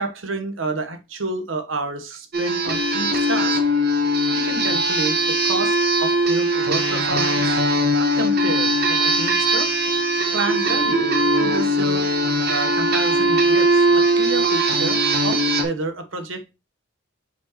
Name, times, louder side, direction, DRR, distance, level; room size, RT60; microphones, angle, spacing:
voice 1, 0.0-3.6 4.3-7.6 8.0-9.7 10.3-11.1 11.4-12.1 12.5-16.5, right 2 dB, 80° right, 1.2 m, -29 dB
sound 1, 2.3-15.6, right 1 dB, 50° right, 1.1 m, -20 dB
7.1 x 4.4 x 3.0 m
head